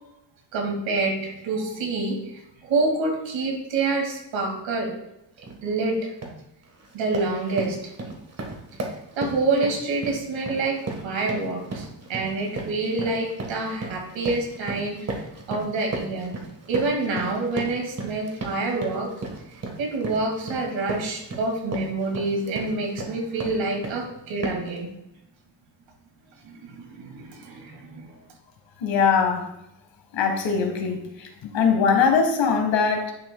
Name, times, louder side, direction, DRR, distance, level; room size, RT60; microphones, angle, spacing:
voice 1, 0.5-4.9 5.6-6.1 6.9-7.9 9.2-15.2 15.5-16.3 16.7-19.1 19.8-24.9 26.4-28.2, right 3 dB, 90° right, 1 dB, 2.1 m, -27 dB
sound 1, 5.4-5.6 6.0-6.4 6.8-24.1 24.4-24.8, right 2 dB, 35° right, 1.3 m, -35 dB
voice 2, 28.8-29.5 30.1-33.1, left 6 dB, 85° left, 4 dB, 1.5 m, -22 dB
10.0 x 5.9 x 2.2 m, 0.85 s
cardioid pair, 105°, 44 cm